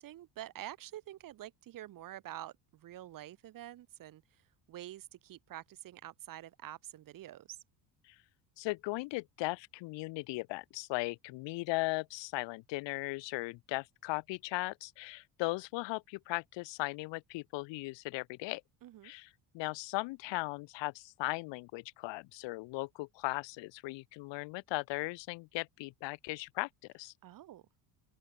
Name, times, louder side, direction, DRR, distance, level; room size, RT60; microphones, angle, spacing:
voice 1, 0.0-7.6 18.8-19.1 27.2-27.7, right 13 dB, 50° right, 4.7 m, -47 dB
voice 2, 8.6-18.6 19.0-19.3 19.5-26.7 26.9-27.1, left 23 dB, 85° left, 1.7 m, -37 dB
open air
cardioid pair, 175°, 43 cm